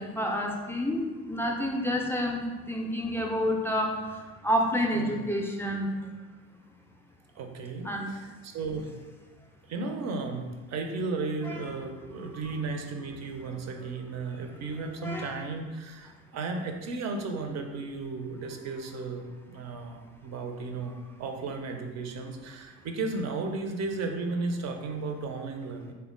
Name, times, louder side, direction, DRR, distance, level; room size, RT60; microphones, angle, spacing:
voice 1, 0.0-6.1 7.8-8.1 11.4-11.6 12.3-12.4 15.0-15.5, equal, 5° left, 0 dB, 0.4 m, -29 dB
voice 2, 4.9-5.2 7.4-8.9 9.7-25.9, right 3 dB, 45° right, 4 dB, 0.5 m, -34 dB
3.5 x 2.2 x 3.6 m, 1.3 s
hypercardioid pair, 55°, 39 cm